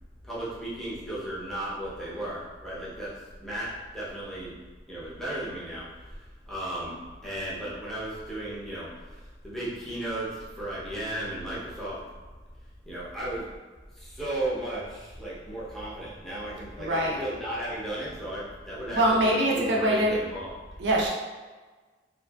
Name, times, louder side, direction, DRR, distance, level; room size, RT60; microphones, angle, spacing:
voice 1, 0.2-4.6 4.9-12.0 12.8-13.5 13.9-20.5, right 1 dB, ahead, -9 dB, 0.6 m, -35 dB
voice 2, 16.8-17.2 18.9-20.1 20.8-21.1, right 1 dB, 75° right, -3 dB, 0.5 m, -23 dB
2.7 x 2.4 x 2.3 m, 1.3 s
head